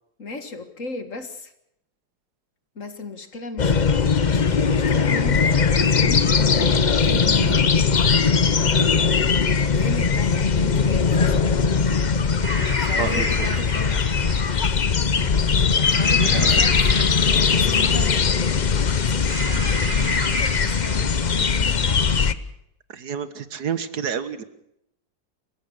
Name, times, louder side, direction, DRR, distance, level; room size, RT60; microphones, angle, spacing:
voice 1, 0.2-1.5 2.8-7.7 9.7-11.8 12.6-14.0 15.6-22.2, left 3 dB, 45° left, 9 dB, 2.1 m, -36 dB
sound 1, 3.6-22.3, left 5 dB, 60° left, 0.4 m, -20 dB
sound 2, 12.4-14.8 15.8-18.2 19.3-21.1, right 3 dB, 25° right, 0.7 m, -34 dB
voice 2, 13.0-13.5 16.1-16.6 22.9-24.4, right 7 dB, 55° right, 13 dB, 1.9 m, -29 dB
28.5 x 15.5 x 6.5 m, 0.78 s
omnidirectional pair, 2.1 m